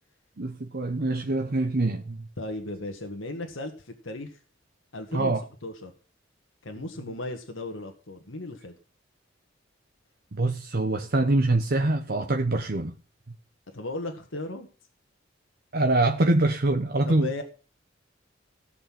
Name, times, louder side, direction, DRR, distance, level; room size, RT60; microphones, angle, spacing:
voice 1, 0.4-2.3 5.1-5.4 10.3-12.9 15.7-17.3, right 2 dB, 55° right, 1.0 m, -24 dB
voice 2, 2.4-4.4 4.9-5.3 5.6-5.9 6.6-8.7 13.7-14.7 17.0-17.4, left 2 dB, 80° left, 1.8 m, -36 dB
16.5 x 7.0 x 5.9 m
head